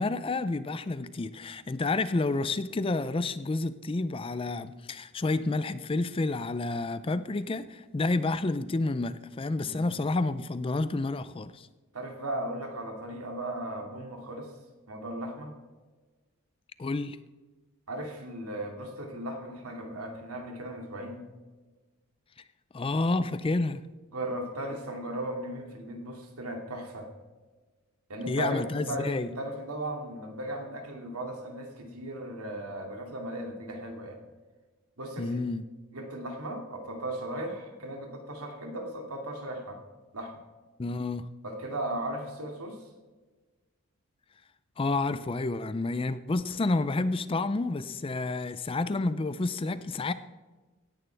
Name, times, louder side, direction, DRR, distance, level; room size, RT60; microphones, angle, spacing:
voice 1, 0.0-11.7 16.8-17.2 22.7-23.8 28.3-29.3 35.2-35.6 40.8-41.3 44.8-50.1, left 2 dB, 25° left, 0.4 m, -29 dB
voice 2, 9.5-9.9 11.9-14.5 14.9-15.5 17.9-21.2 24.1-27.1 28.1-34.2 35.0-35.4 35.9-39.8 40.1-40.3 41.4-42.8, right 1 dB, 80° right, 2.5 m, -36 dB
17.0 x 11.0 x 3.4 m
head